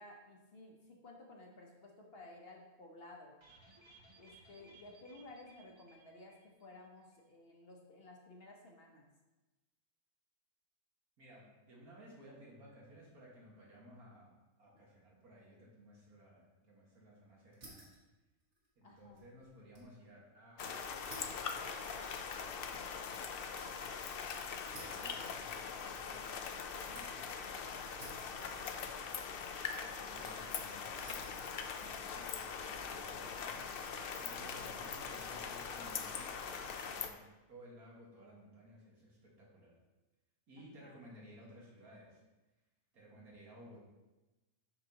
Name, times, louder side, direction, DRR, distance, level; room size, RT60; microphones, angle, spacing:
voice 1, 0.0-3.3 4.2-9.0 18.8-19.3 30.0-30.3 34.4-34.8 40.5-41.0, left 2 dB, 45° left, 0 dB, 1.1 m, -55 dB
sound 1, 3.4-6.9 7.1-7.2 7.5-7.6, right 2 dB, 30° right, 0.6 m, -62 dB
voice 2, 11.2-17.9 18.8-20.8 22.6-22.8 24.7-29.2 29.8-33.7 34.1-37.2 37.5-39.8 40.5-42.2 42.9-43.8, equal, 85° right, -4 dB, 2.3 m, -57 dB
sound 2, 17.5-18.0 18.4-19.9 20.2-20.3 21.1-23.9 24.7-25.8 26.2-27.3 28.0-28.9 29.1-29.7 30.2-30.6 31.0-31.4 32.1-32.5, right 1 dB, 50° right, 2.0 m, -55 dB
sound 3, 20.6-37.1, left 6 dB, 65° left, 0.5 m, -42 dB
7.7 x 5.9 x 2.9 m, 1.1 s
omnidirectional pair, 1.5 m